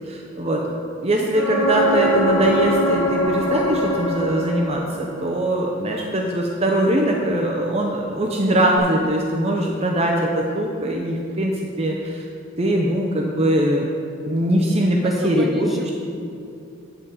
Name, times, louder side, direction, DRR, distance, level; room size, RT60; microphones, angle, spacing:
voice 1, 0.1-0.7 1.0-12.2 12.6-13.9 14.3-15.9, right 1 dB, 30° right, 0 dB, 0.6 m, -21 dB
voice 2, 1.1-1.6 15.0-15.9, left 1 dB, ahead, -2 dB, 0.9 m, -35 dB
sound 1, 1.3-5.1 8.8-8.9, equal, 85° left, 1.1 m, -22 dB
8.7 x 8.0 x 4.0 m, 2.6 s
head